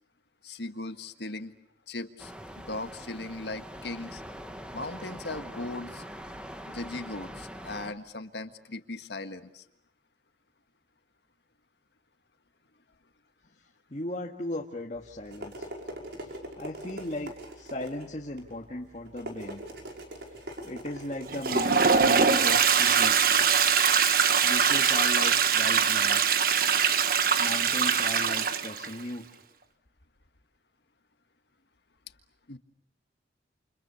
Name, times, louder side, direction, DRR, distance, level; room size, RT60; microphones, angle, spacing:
voice 1, 0.4-1.5 1.9-4.2 4.7-6.0 6.7-9.6 32.5-32.6, left 2 dB, 70° left, 8 dB, 1.7 m, -38 dB
sound 1, 2.2-7.9, equal, 5° right, 1.7 m, -43 dB
voice 2, 13.9-15.7 16.1-19.6 20.6-23.2 24.4-26.3 27.4-29.3, left 1 dB, 40° left, -1 dB, 1.9 m, -37 dB
sound 2, 14.9-23.8, right 1 dB, 70° right, 5.7 m, -43 dB
Toilet flush, 21.3-28.9, right 6 dB, 55° right, 1.4 m, -23 dB
29.0 x 29.0 x 7.1 m, 0.78 s
head